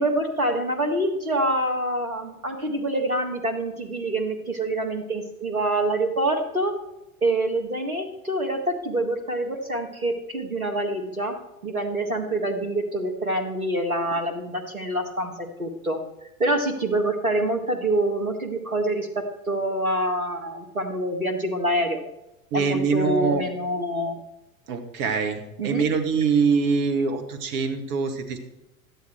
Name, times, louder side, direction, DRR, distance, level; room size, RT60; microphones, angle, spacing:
voice 1, 0.0-6.8 7.2-11.4 11.6-16.0 16.4-22.0 22.5-24.2 25.6-25.9, right 1 dB, 85° right, 6 dB, 1.8 m, -26 dB
voice 2, 22.5-23.5 24.7-28.4, right 5 dB, 45° right, 6 dB, 2.1 m, -24 dB
13.0 x 10.5 x 4.5 m, 0.94 s
figure-of-eight pair, 85°, 41 cm